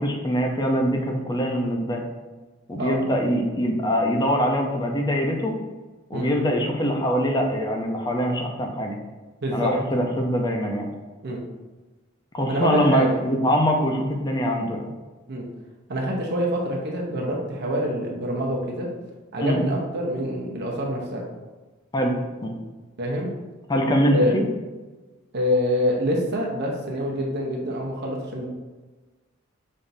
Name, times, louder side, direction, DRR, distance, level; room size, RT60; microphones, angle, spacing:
voice 1, 0.0-2.0 2.7-5.5 6.1-8.9 9.5-10.9 12.3-14.9 19.4-19.6 21.9-22.2 22.4-22.5 23.7-24.4, equal, 20° left, 1 dB, 0.6 m, -23 dB
voice 2, 12.4-13.2 15.3-15.5 15.9-18.9 19.3-21.3 23.0-23.3 24.1-24.3 25.3-28.5, equal, 55° right, -2 dB, 0.8 m, -26 dB
5.4 x 3.4 x 2.6 m, 1.3 s
head